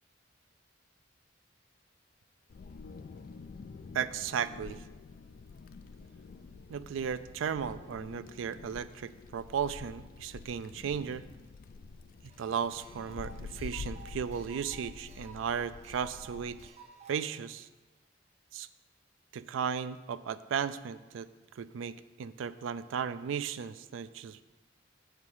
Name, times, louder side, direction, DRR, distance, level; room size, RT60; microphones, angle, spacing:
Wind, 2.5-16.7, left 4 dB, 50° left, 0.3 m, -48 dB
voice 1, 3.9-4.8 6.7-11.2 12.4-16.7 17.1-17.7 18.5-18.7 19.3-21.3 21.6-24.4, right 7 dB, 90° right, 14 dB, 0.4 m, -35 dB
sound 1, 12.3-17.3, right 4 dB, 35° right, 0.7 m, -53 dB
7.6 x 4.7 x 5.5 m, 1.2 s
head